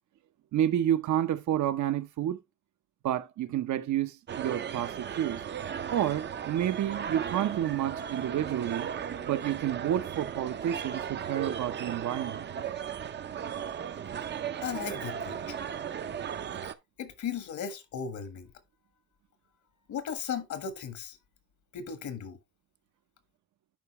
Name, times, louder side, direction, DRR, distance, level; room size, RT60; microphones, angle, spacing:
voice 1, 0.5-2.4 3.0-5.4 5.9-8.9 9.3-12.5, right 11 dB, 70° right, 0.9 m, -30 dB
sound 1, 4.3-16.7, right 8 dB, 35° right, 0.5 m, -36 dB
voice 2, 14.6-15.6 17.0-18.5 19.9-21.2 21.7-22.4, left 7 dB, 70° left, 1.5 m, -36 dB
10.5 x 4.8 x 3.1 m
cardioid pair, 145°, 30 cm